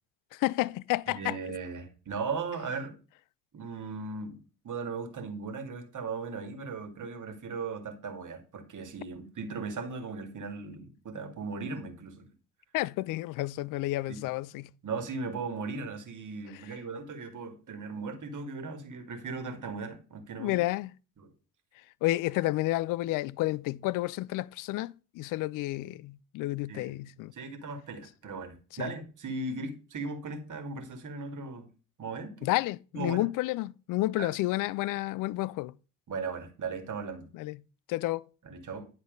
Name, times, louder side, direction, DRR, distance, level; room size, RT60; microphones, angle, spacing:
voice 1, 0.3-1.6 12.7-14.6 20.4-20.9 22.0-27.3 28.8-28.9 32.4-35.7 37.3-37.6 37.9-38.3, left 17 dB, 45° left, 0.4 m, -30 dB
voice 2, 1.1-2.9 3.5-4.4 4.6-12.3 14.1-14.3 14.8-20.6 21.2-21.3 26.7-27.0 27.3-31.7 32.0-32.5 32.9-33.2 34.2-34.3 36.1-37.3 38.4-38.9, right 4 dB, 40° right, 2.2 m, -37 dB
10.5 x 4.1 x 5.2 m
figure-of-eight pair, 50°, 46 cm